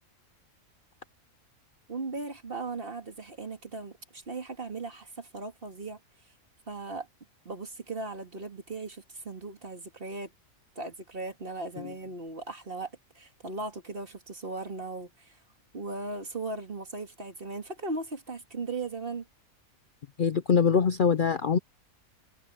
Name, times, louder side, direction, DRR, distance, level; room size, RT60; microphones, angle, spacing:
voice 1, 1.9-6.0 6.7-7.1 7.4-10.3 10.8-15.4 15.7-19.3, right 3 dB, 40° right, 2.7 m, -38 dB
voice 2, 20.2-21.6, left 6 dB, 55° left, 0.5 m, -23 dB
omnidirectional pair, 1.5 m